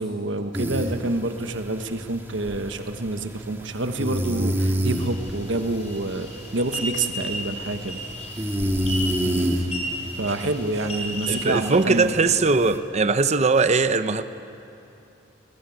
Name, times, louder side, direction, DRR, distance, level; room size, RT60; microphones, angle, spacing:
voice 1, 0.0-8.0 10.2-12.1, right 2 dB, 75° right, 1.2 m, -27 dB
sound 1, 0.5-12.8, equal, 15° right, 1.9 m, -30 dB
sound 2, 4.9-11.8, equal, 35° left, 4.6 m, -35 dB
voice 2, 9.2-9.6 11.3-14.2, right 3 dB, 35° right, 0.8 m, -21 dB
22.0 x 21.0 x 9.3 m
head